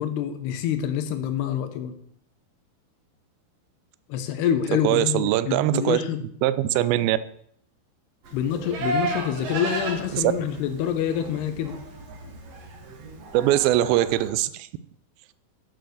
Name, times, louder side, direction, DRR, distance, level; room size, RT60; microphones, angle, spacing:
voice 1, 0.0-2.0 4.1-6.2 8.3-11.7, left 9 dB, 85° left, 8 dB, 3.0 m, -26 dB
voice 2, 4.8-6.0 6.4-7.2 10.1-10.3 13.3-14.5, right 14 dB, 80° right, 14 dB, 2.2 m, -21 dB
Livestock farm animals working animals, 8.2-14.3, right 2 dB, 50° right, 2.1 m, -34 dB
9.2 x 6.5 x 6.4 m, 0.66 s
omnidirectional pair, 4.6 m